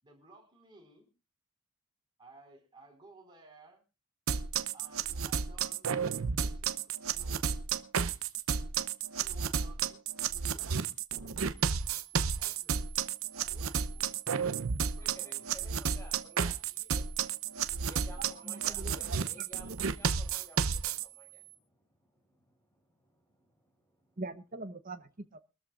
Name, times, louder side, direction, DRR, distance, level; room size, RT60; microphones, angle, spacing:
voice 1, 0.0-1.1 2.2-3.8 4.7-5.9 6.3-7.5 9.1-10.7 12.1-12.9 13.3-14.2 14.8-15.5, right 2 dB, 20° right, 1 dB, 4.9 m, -58 dB
sound 1, 4.3-21.0, right 6 dB, 75° right, 0.8 m, -32 dB
sound 2, 11.6-21.6, right 34 dB, 55° right, 1.6 m, -55 dB
voice 2, 15.0-24.2, equal, 15° left, 0 dB, 5.9 m, -56 dB
voice 3, 18.4-19.4 24.2-25.4, right 2 dB, 40° right, 9 dB, 0.9 m, -43 dB
23.5 x 13.0 x 2.5 m, 0.30 s
head